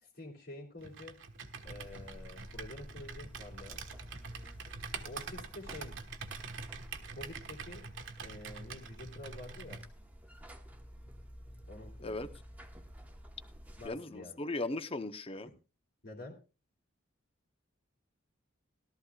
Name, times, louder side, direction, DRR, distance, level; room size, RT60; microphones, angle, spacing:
voice 1, 0.0-1.2 1.6-3.8 5.0-5.9 7.1-7.8 8.2-9.8 11.7-12.2 13.8-14.4 15.4-15.5 16.0-16.4, left 2 dB, 60° left, -5 dB, 2.9 m, -48 dB
Computer keyboard, 0.8-9.9, right 5 dB, 70° right, 1.3 m, -45 dB
Buzz, 1.7-13.9, equal, 10° right, 1.1 m, -51 dB
voice 2, 13.8-15.5, left 2 dB, 30° left, 11 dB, 0.8 m, -37 dB
17.5 x 13.0 x 2.3 m, 0.31 s
head